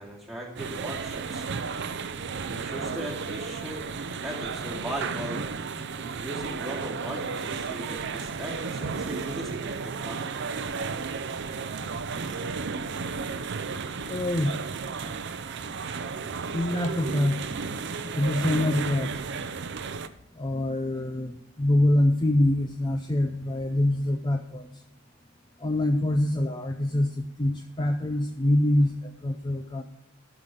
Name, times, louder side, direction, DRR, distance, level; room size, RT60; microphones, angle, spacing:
voice 1, 0.0-1.5 2.5-3.9 4.2-5.4 6.0-10.3, right 1 dB, ahead, -4 dB, 2.4 m, -38 dB
sound 1, 0.6-20.1, right 5 dB, 60° right, 0.6 m, -33 dB
voice 2, 14.1-14.6 16.5-17.4 18.2-19.1 20.4-24.7 25.6-29.8, left 1 dB, 20° left, 6 dB, 0.5 m, -25 dB
12.0 x 5.8 x 4.9 m, 0.85 s
head